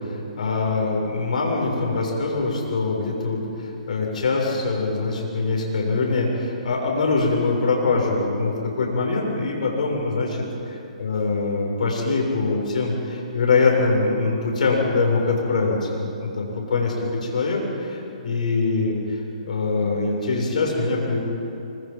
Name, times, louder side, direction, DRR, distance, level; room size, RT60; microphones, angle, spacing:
voice 1, 0.0-16.9 17.2-19.2 19.4-21.2, left 3 dB, 70° left, 0 dB, 7.1 m, -23 dB
25.5 x 25.5 x 5.6 m, 2.8 s
hypercardioid pair, 140°, 4 cm